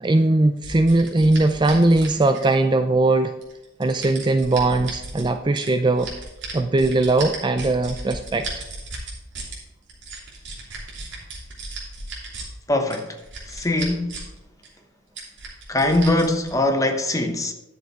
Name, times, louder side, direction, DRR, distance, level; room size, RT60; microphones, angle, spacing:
voice 1, 0.0-3.3 3.8-6.1 6.5-8.5, right 2 dB, 25° right, 0.4 m, -19 dB
sound 1, 0.6-2.7 3.4-5.3 5.6-9.6 9.9-12.4 12.9-14.4 14.6-14.7 15.2-16.5, right 3 dB, 65° right, 3.0 m, -35 dB
voice 2, 12.7-14.2 15.7-17.5, left 1 dB, 15° left, 0.9 m, -22 dB
11.0 x 6.7 x 4.6 m
head